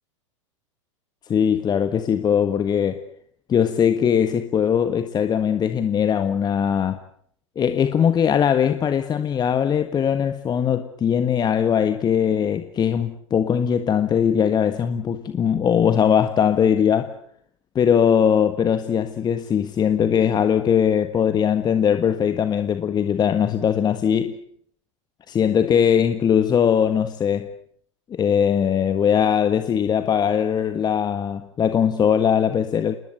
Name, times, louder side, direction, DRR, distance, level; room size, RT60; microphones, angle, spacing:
voice 1, 1.3-3.0 3.5-7.0 7.5-17.1 17.7-24.4 25.3-27.5 28.1-33.0, left 8 dB, 25° left, 1.6 m, -20 dB
27.5 x 21.0 x 8.2 m
hypercardioid pair, 100°, 16 cm